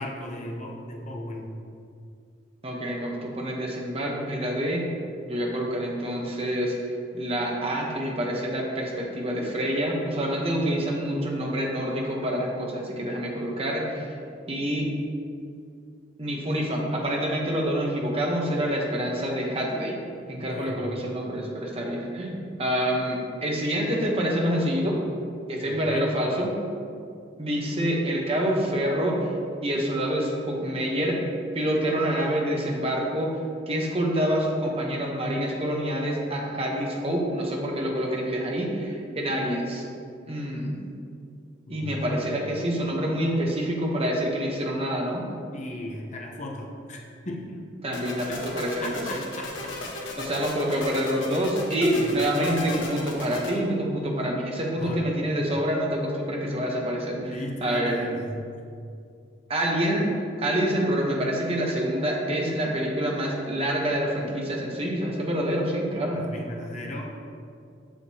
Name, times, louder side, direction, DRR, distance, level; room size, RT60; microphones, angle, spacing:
voice 1, 0.0-1.5 20.3-20.9 25.6-26.1 39.1-39.2 41.7-42.0 45.5-47.6 48.3-49.7 51.9-52.2 54.6-55.0 57.1-58.3 66.1-67.1, left 1 dB, 40° left, 0 dB, 0.9 m, -37 dB
voice 2, 2.6-4.9 5.2-6.7 7.1-14.1 14.5-14.9 16.2-20.0 20.3-25.0 25.5-26.6 27.4-29.2 29.6-31.2 31.5-33.3 33.7-39.8 40.3-40.8 41.7-45.3 47.8-49.2 50.2-58.1 59.5-66.3, equal, 30° right, -1 dB, 1.0 m, -27 dB
sound 1, 47.9-53.5, left 2 dB, 75° left, 1.1 m, -36 dB
7.2 x 6.6 x 2.9 m, 2.4 s
head